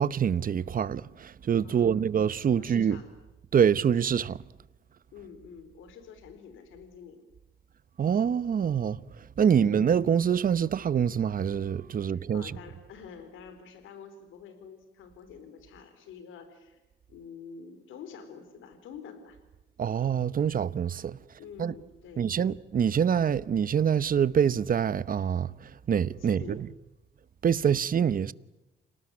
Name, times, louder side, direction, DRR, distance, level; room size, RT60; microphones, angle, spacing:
voice 1, 0.0-3.0 3.5-4.4 8.0-9.0 9.4-12.4 19.8-21.2 21.6-21.7 22.2-25.5 25.9-26.6 27.4-28.3, right 8 dB, 45° right, 1.0 m, -25 dB
voice 2, 1.6-2.1 2.6-3.1 5.1-7.2 11.9-16.8 17.1-19.4 21.4-22.4 26.2-26.6, left 6 dB, 85° left, 4.2 m, -47 dB
29.0 x 19.0 x 9.8 m
cardioid pair, 90°, 20 cm